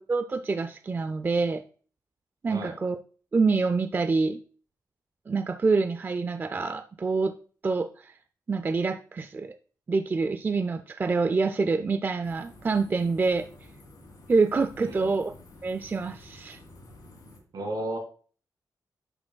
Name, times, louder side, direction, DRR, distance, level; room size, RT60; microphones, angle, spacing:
voice 1, 0.0-1.6 2.4-3.0 3.3-4.4 5.3-7.3 7.6-8.1 8.5-9.5 9.9-13.5 14.3-15.3 15.6-16.6, right 4 dB, 30° right, 10 dB, 0.3 m, -26 dB
sound 1, 12.2-17.4, left 2 dB, 60° left, 3.3 m, -50 dB
voice 2, 14.8-15.2 17.5-18.0, right 1 dB, 70° right, 3 dB, 2.0 m, -33 dB
10.5 x 6.3 x 2.2 m, 0.42 s
wide cardioid pair, 140°, 7 cm